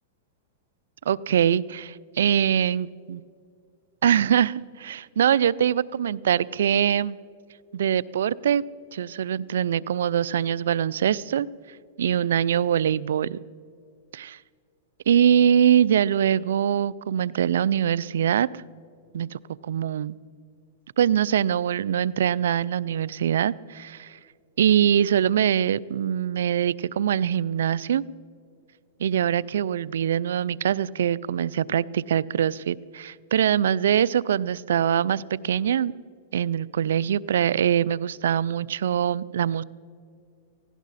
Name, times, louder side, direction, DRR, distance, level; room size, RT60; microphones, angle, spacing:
voice 1, 1.1-3.2 4.0-7.2 7.7-8.6 8.9-11.5 12.0-13.4 14.1-14.4 15.1-18.6 19.1-20.2 21.0-24.2 24.6-28.0 29.0-35.9 36.3-39.6, right 9 dB, 80° right, 22 dB, 0.4 m, -23 dB
18.0 x 16.0 x 4.2 m, 2.2 s
hypercardioid pair, 125°, 0 cm